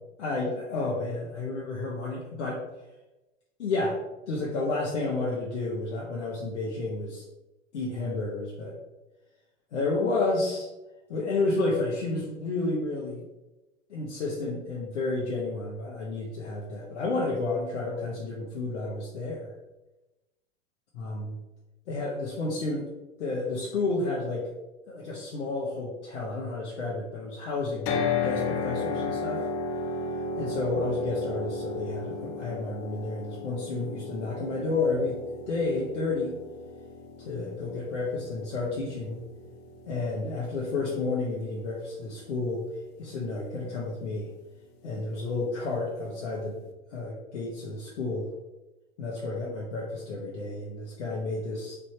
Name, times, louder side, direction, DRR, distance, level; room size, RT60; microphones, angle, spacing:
voice 1, 0.2-2.6 3.6-4.0 4.3-7.2 7.7-8.8 9.7-10.7 11.1-13.2 13.9-19.5 21.0-21.4 21.9-22.9 23.2-24.5 24.9-29.4 30.4-35.2 35.5-36.3 37.2-39.2 39.9-42.6 43.0-44.3 44.8-46.6 46.9-48.3 49.0-51.7, left 3 dB, 70° left, -4 dB, 0.9 m, -31 dB
sound 1, 27.9-42.0, left 4 dB, 30° left, 0.5 m, -34 dB
3.4 x 2.6 x 4.3 m, 1.0 s
hypercardioid pair, 100°, 36 cm